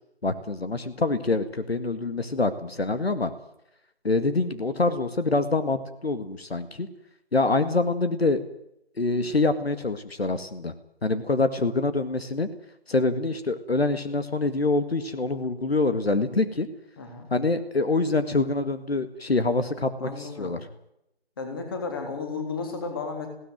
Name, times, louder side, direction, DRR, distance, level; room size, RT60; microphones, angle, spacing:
voice 1, 0.2-3.3 4.0-6.9 7.3-8.4 9.0-10.7 11.0-12.5 12.9-16.7 17.3-20.6, left 3 dB, 65° left, 10 dB, 2.1 m, -25 dB
voice 2, 17.0-17.3 20.0-20.6 21.4-23.3, left 4 dB, 20° left, 4 dB, 3.3 m, -33 dB
19.5 x 17.0 x 9.3 m, 0.81 s
figure-of-eight pair, 170°, 32 cm